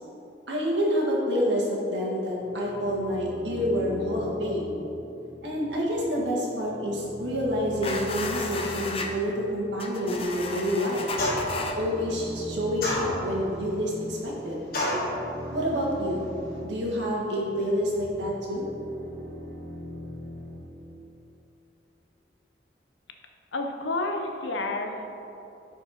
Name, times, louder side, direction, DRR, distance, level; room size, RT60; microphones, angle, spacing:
voice 1, 0.5-4.8 5.4-11.1 11.8-14.6 15.5-16.3 16.6-18.7, equal, 75° right, -3 dB, 1.7 m, -28 dB
sound 1, 2.3-20.9, equal, 55° right, 1.5 m, -42 dB
sound 2, 7.8-9.1 9.8-11.7, left 3 dB, 30° left, 0.6 m, -34 dB
sound 3, 11.2-11.7 12.8-13.5 14.7-15.1, left 1 dB, 50° left, 1.7 m, -28 dB
voice 2, 23.5-25.1, left 2 dB, 85° left, 4 dB, 0.8 m, -30 dB
10.5 x 4.6 x 4.2 m, 2.9 s
head